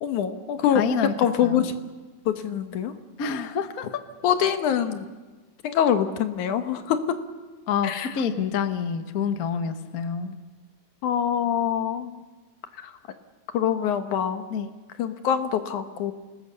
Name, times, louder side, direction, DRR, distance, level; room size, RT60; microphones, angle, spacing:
voice 1, 0.0-0.8 1.2-1.8 2.3-2.9 4.2-5.1 5.6-7.0 7.8-8.2 11.0-12.2 12.8-12.9 13.5-14.4 15.0-16.1, left 9 dB, 75° left, 8 dB, 2.7 m, -24 dB
voice 2, 0.7-1.1 1.4-1.7 3.2-4.0 7.7-10.4 14.5-14.7, left 6 dB, 60° left, 8 dB, 0.9 m, -27 dB
28.0 x 19.5 x 6.9 m, 1.3 s
omnidirectional pair, 3.5 m